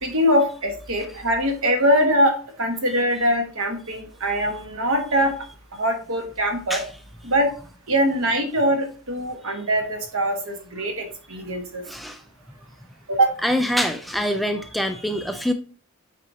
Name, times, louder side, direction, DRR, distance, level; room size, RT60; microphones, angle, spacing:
voice 1, 0.0-5.3 5.7-6.8 7.2-7.5 7.9-11.8 13.1-13.4, equal, 65° right, 4 dB, 1.4 m, -22 dB
voice 2, 11.9-12.2 13.4-15.5, equal, ahead, 6 dB, 0.3 m, -25 dB
8.3 x 4.7 x 2.8 m, 0.39 s
head